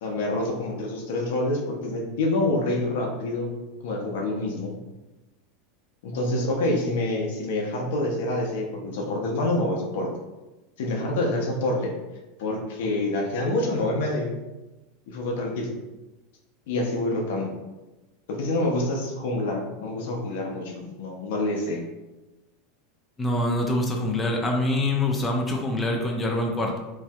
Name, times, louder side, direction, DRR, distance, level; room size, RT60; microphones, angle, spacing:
voice 1, 0.0-3.6 3.8-4.8 6.0-10.1 10.8-11.9 12.4-14.3 15.1-15.7 16.7-17.5 18.3-21.8, left 2 dB, 70° left, 0 dB, 0.6 m, -27 dB
voice 2, 23.2-26.8, left 1 dB, 15° left, 0 dB, 0.5 m, -25 dB
3.2 x 2.7 x 2.3 m, 1.1 s
hypercardioid pair, 100°, 0 cm